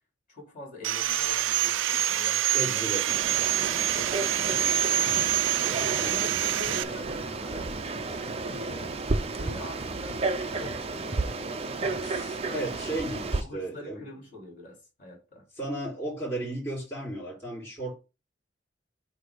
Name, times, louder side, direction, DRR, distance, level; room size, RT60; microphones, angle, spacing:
voice 1, 0.3-2.9 3.9-5.3 5.9-7.9 8.4-8.9 9.3-11.5 12.4-12.8 13.4-15.5, left 2 dB, 40° left, 3.7 m, -45 dB
Sawing, 0.8-6.8, right 12 dB, 85° right, 0.5 m, -26 dB
voice 2, 2.5-3.1 6.0-6.2 12.5-14.0 15.6-17.9, right 1 dB, 15° left, 4.2 m, -34 dB
Frog, 3.1-13.4, right 3 dB, 30° right, 0.5 m, -32 dB
sound 1, 4.5-12.4, left 1 dB, 70° left, 1.3 m, -47 dB
8.2 x 2.8 x 5.1 m
head